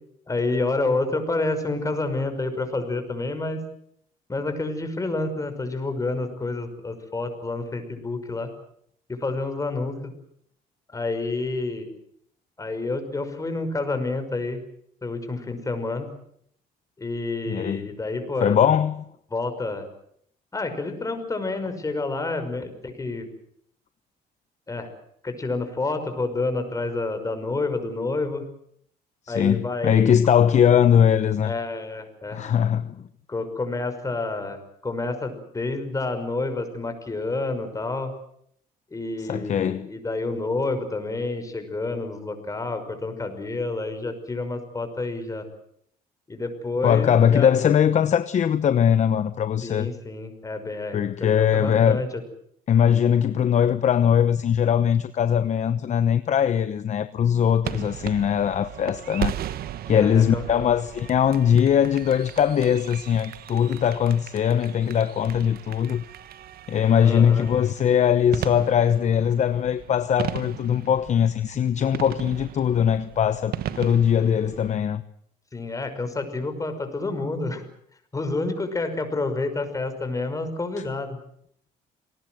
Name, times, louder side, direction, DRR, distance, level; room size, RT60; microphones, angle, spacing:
voice 1, 0.3-3.6 4.3-8.5 9.2-9.9 10.9-11.9 12.6-14.6 15.0-16.1 17.0-18.6 19.3-19.9 20.5-23.3 24.7-24.9 25.2-28.4 29.3-30.1 31.4-32.4 33.3-38.1 38.9-45.5 46.3-47.5 49.6-52.1 59.9-60.6 67.0-67.4 75.5-77.6 78.1-81.2, left 3 dB, 20° left, 5.8 m, -29 dB
voice 2, 17.5-17.9 18.4-19.0 29.3-31.5 32.3-33.0 39.2-39.9 46.8-49.9 50.9-52.0 52.7-59.3 59.9-66.0 66.7-75.0 80.8-80.9, left 8 dB, 45° left, 1.0 m, -21 dB
sound 1, 57.6-74.7, right 11 dB, 65° right, 1.2 m, -37 dB
28.0 x 19.0 x 7.9 m
cardioid pair, 110°, 17 cm